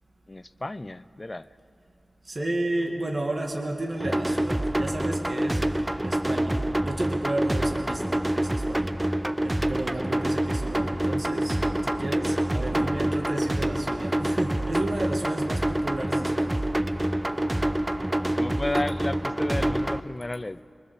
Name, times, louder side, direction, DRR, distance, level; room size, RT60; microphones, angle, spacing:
voice 1, 0.3-1.5 17.4-18.0 18.4-20.6, left 2 dB, 30° left, 15 dB, 0.5 m, -33 dB
voice 2, 2.3-5.6 6.0-8.9 9.4-11.6 11.8-16.6, right 1 dB, 45° right, 1 dB, 2.1 m, -32 dB
sound 1, 4.0-20.0, right 1 dB, 15° right, 0.6 m, -26 dB
24.0 x 23.5 x 7.1 m, 2.4 s
wide cardioid pair, 80°, 0 cm